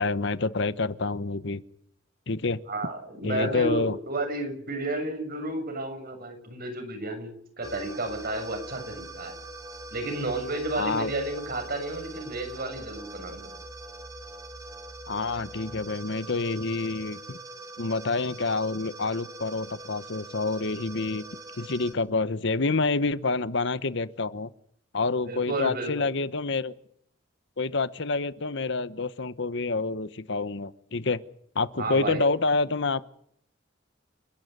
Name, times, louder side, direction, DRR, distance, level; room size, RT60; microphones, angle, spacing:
voice 1, 0.0-1.6 2.3-2.6 3.2-4.0 10.7-11.1 15.1-17.4 17.8-21.2 21.6-24.5 24.9-26.7 27.6-31.2 31.5-33.0, left 3 dB, 65° left, 15 dB, 1.0 m, -28 dB
voice 2, 2.7-7.3 7.6-9.4 9.9-13.5 25.3-26.1 31.8-32.2, right 2 dB, 50° right, 6 dB, 7.0 m, -32 dB
sound 1, 7.6-21.9, right 2 dB, 20° right, 3.7 m, -43 dB
30.0 x 12.0 x 9.5 m, 0.69 s
head